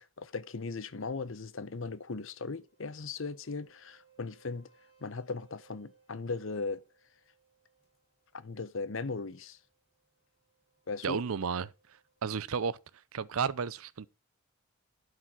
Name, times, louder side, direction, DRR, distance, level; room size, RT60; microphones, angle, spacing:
voice 1, 0.0-4.7 5.0-6.8 8.3-9.6 10.9-11.2, left 4 dB, 60° left, 0.7 m, -38 dB
sound 1, 2.2-12.5, right 6 dB, 25° left, 5.5 m, -69 dB
voice 2, 11.0-11.7 12.2-12.8 13.1-14.1, right 6 dB, 75° right, 0.5 m, -32 dB
11.5 x 5.0 x 5.7 m
head